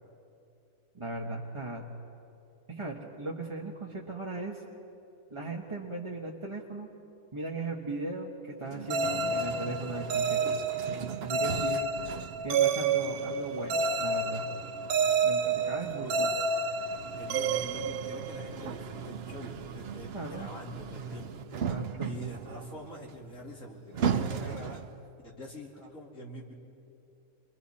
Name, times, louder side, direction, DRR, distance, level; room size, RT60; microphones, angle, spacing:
voice 1, 0.9-1.9 2.7-4.6 5.3-6.9 7.3-10.4 11.2-11.9 12.4-14.5 15.2-16.3 20.1-20.5 21.7-22.1, right 2 dB, 20° right, -4 dB, 1.4 m, -37 dB
sound 1, 8.7-25.1, right 7 dB, 55° right, 0.8 m, -39 dB
sound 2, 8.9-18.7, right 4 dB, 80° right, 1.2 m, -30 dB
Acoustic guitar, 9.0-12.9, equal, 5° left, 3.8 m, -50 dB
voice 2, 15.8-16.2 17.2-21.3 22.0-24.8 25.2-26.5, equal, 60° left, -2 dB, 3.1 m, -44 dB
30.0 x 23.5 x 4.3 m, 2.8 s
omnidirectional pair, 1.6 m